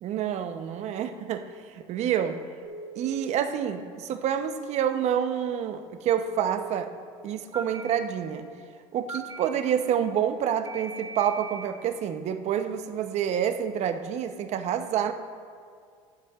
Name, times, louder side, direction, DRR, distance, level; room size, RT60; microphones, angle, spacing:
voice 1, 0.0-1.4 1.8-2.4 3.0-6.9 7.2-8.4 8.9-15.1, right 9 dB, 55° right, 8 dB, 0.8 m, -28 dB
Telephone, 2.6-3.1 6.1-6.6 7.5-7.8 9.1-9.4 10.7-11.7, right 4 dB, 25° right, 1.2 m, -39 dB
13.5 x 11.5 x 2.4 m, 2.1 s
supercardioid pair, 90°, 14 cm